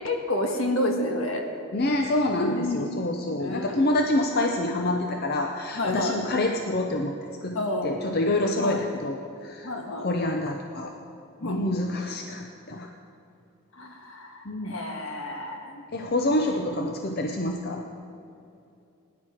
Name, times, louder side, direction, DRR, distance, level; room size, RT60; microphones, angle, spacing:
voice 1, 0.0-1.4 2.5-2.9 3.3-3.8 5.8-6.2 7.5-8.0 8.6-8.8 9.6-10.1 11.4-11.6 13.7-15.8 16.4-16.5, left 1 dB, 70° left, 3 dB, 1.5 m, -30 dB
voice 2, 1.7-7.1 7.4-7.6 7.8-9.7 10.0-10.9 11.4-12.9 14.4-14.8 15.9-17.8, left 1 dB, 45° left, 3 dB, 0.6 m, -27 dB
17.5 x 10.5 x 4.4 m, 2.6 s
head